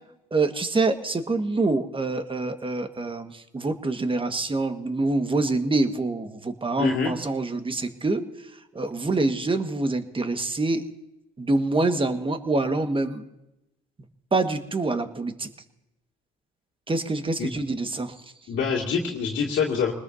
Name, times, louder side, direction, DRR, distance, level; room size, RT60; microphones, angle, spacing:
voice 1, 0.3-8.2 8.7-10.8 11.4-13.2 14.3-15.5 16.9-18.1, right 3 dB, 25° right, 8 dB, 1.6 m, -26 dB
voice 2, 6.8-7.1 17.4-17.5 18.5-19.9, left 6 dB, 60° left, -3 dB, 2.4 m, -25 dB
25.0 x 20.0 x 2.8 m, 0.90 s
hypercardioid pair, 55°, 21 cm